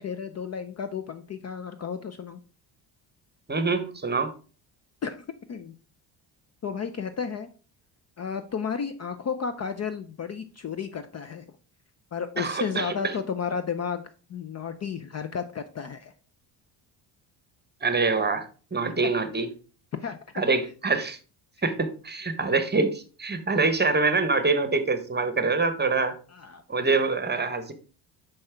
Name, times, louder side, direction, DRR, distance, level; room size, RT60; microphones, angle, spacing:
voice 1, 0.0-2.4 5.0-5.7 6.6-7.5 8.2-11.5 12.1-16.1 20.0-20.4 26.3-26.6, left 6 dB, 35° left, 10 dB, 0.5 m, -33 dB
voice 2, 3.5-4.3 12.4-12.9 17.8-18.4 18.7-19.5 20.4-21.2 21.6-26.1 26.7-27.7, right 3 dB, 20° right, 10 dB, 0.9 m, -25 dB
5.5 x 5.4 x 3.4 m, 0.37 s
supercardioid pair, 70°, 50 cm